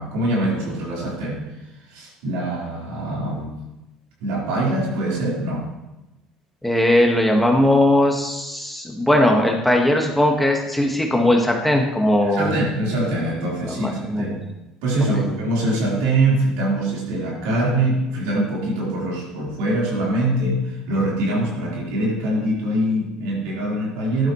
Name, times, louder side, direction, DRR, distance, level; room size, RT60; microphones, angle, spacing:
voice 1, 0.0-1.4 1.9-3.5 4.2-5.7 12.2-14.4 14.8-24.3, right 1 dB, 85° right, -4 dB, 4.2 m, -23 dB
voice 2, 6.6-12.5 13.6-14.4 15.2-15.3, left 1 dB, 5° left, 0 dB, 1.7 m, -19 dB
13.5 x 11.5 x 3.2 m, 0.97 s
supercardioid pair, 100°, 2 cm